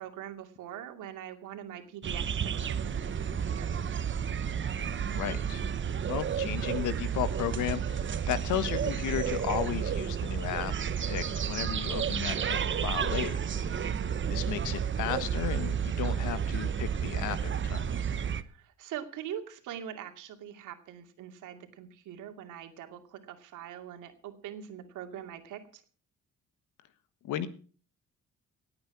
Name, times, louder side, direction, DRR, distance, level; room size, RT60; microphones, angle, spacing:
voice 1, 0.0-3.9 13.9-14.1 18.3-25.8, right 10 dB, 85° right, 5 dB, 2.5 m, -43 dB
sound 1, 2.0-18.4, right 7 dB, 40° right, 1.0 m, -31 dB
voice 2, 5.1-5.6 6.1-13.4 13.7-13.9 14.3-17.9 27.2-27.5, left 11 dB, 90° left, 13 dB, 1.4 m, -34 dB
18.5 x 8.8 x 6.0 m, 0.41 s
cardioid pair, 90°, 30 cm